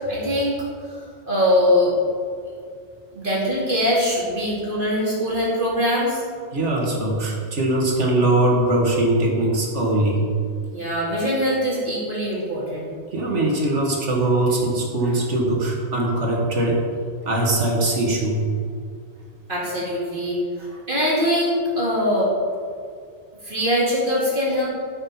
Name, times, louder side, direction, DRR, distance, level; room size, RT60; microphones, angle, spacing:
voice 1, 0.1-0.6 0.8-1.0 1.3-1.9 3.1-6.2 10.7-12.9 19.5-20.4 20.9-22.3 23.4-24.7, equal, 40° right, -7 dB, 2.7 m, -22 dB
voice 2, 6.5-10.3 13.1-16.9 17.3-18.4 20.6-20.7, right 1 dB, 65° right, -1 dB, 1.9 m, -21 dB
13.0 x 6.2 x 4.3 m, 2.2 s
omnidirectional pair, 1.3 m